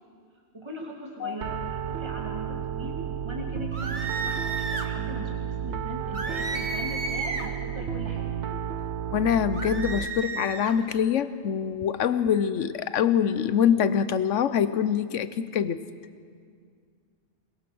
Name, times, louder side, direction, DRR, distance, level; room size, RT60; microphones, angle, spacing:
voice 1, 0.5-8.2, equal, 20° right, -1 dB, 2.7 m, -40 dB
Piano, 1.4-10.0, right 9 dB, 70° right, 1.1 m, -32 dB
sound 1, 3.7-4.9 6.1-7.6 9.5-10.8, right 3 dB, 40° right, 1.5 m, -33 dB
voice 2, 9.1-15.8, left 8 dB, 85° left, 13 dB, 1.1 m, -24 dB
22.5 x 21.0 x 6.2 m, 2.1 s
omnidirectional pair, 1.2 m